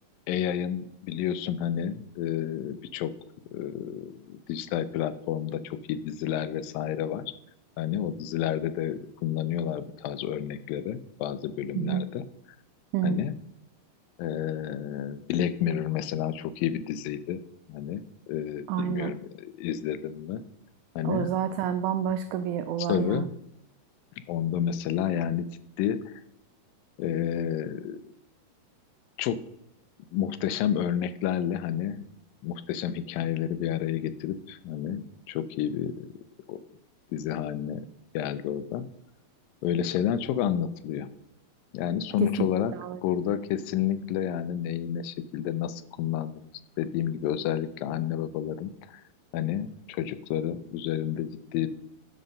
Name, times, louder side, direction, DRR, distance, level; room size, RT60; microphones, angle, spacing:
voice 1, 0.3-3.1 3.5-7.3 7.8-12.2 13.0-13.3 14.2-17.4 17.7-20.4 21.0-21.3 22.9-23.3 24.3-25.5 25.8-26.2 27.0-28.0 29.2-29.4 30.1-32.1 32.4-35.9 36.5-36.6 37.1-37.8 38.1-38.9 39.6-41.1 41.7-42.7 43.0-46.5 46.8-49.0 49.3-51.7, left 10 dB, 85° left, 13 dB, 2.4 m, -30 dB
voice 2, 11.7-12.1 12.9-13.2 18.7-19.1 21.0-23.3 42.2-42.5 42.8-43.0, right 9 dB, 90° right, 10 dB, 1.7 m, -28 dB
12.0 x 5.4 x 5.3 m, 0.81 s
omnidirectional pair, 4.0 m